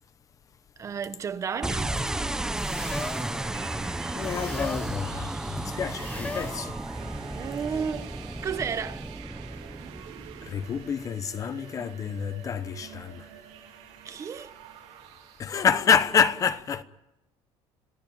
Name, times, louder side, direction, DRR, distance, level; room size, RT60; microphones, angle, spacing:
voice 1, 0.8-1.9 7.3-8.1 8.4-9.1 14.0-14.5, right 6 dB, 25° right, 1.1 m, -32 dB
sound 1, 1.6-11.0, right 1 dB, 5° right, 0.9 m, -33 dB
sound 2, 1.6-15.8, right 11 dB, 90° right, 4.7 m, -47 dB
sound 3, 2.5-3.4 4.2-5.0 5.9-6.7, left 3 dB, 15° left, 1.2 m, -38 dB
voice 2, 4.1-6.8 10.4-13.2 15.4-16.8, left 7 dB, 30° left, 0.9 m, -27 dB
26.0 x 17.0 x 9.1 m
cardioid pair, 165°, 11 cm